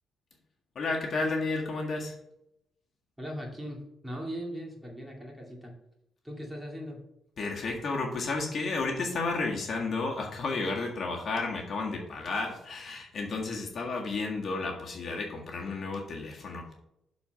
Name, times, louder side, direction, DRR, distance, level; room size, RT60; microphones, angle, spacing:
voice 1, 0.7-2.1 7.4-16.7, left 3 dB, 50° left, 0 dB, 1.6 m, -32 dB
voice 2, 3.2-5.8 6.2-7.0, equal, 5° right, -1 dB, 2.3 m, -39 dB
6.9 x 4.2 x 6.7 m, 0.81 s
cardioid pair, 90°, 0 cm